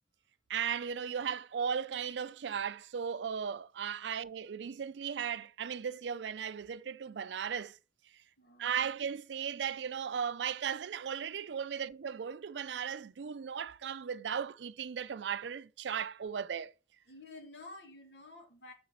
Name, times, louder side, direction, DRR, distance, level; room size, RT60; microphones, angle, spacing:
voice 1, 0.5-7.8 8.6-16.7, right 7 dB, 85° right, 0.4 m, -36 dB
voice 2, 8.4-8.8 11.7-11.8 17.1-18.7, left 2 dB, 75° left, 2.4 m, -51 dB
8.0 x 5.1 x 4.5 m
head